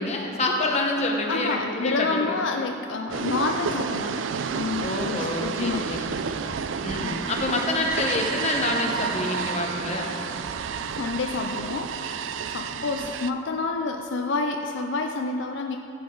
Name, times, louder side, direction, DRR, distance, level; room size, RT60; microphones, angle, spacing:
voice 1, 0.0-2.4 4.8-6.3 6.8-10.2 12.7-12.9, left 2 dB, 35° left, 0 dB, 1.2 m, -27 dB
voice 2, 1.3-4.3 4.5-6.0 7.4-7.7 11.0-15.8, left 3 dB, 70° left, 4 dB, 0.5 m, -29 dB
sound 1, 3.1-13.3, right 6 dB, 75° right, 0.4 m, -30 dB
14.5 x 7.9 x 3.9 m, 2.7 s
head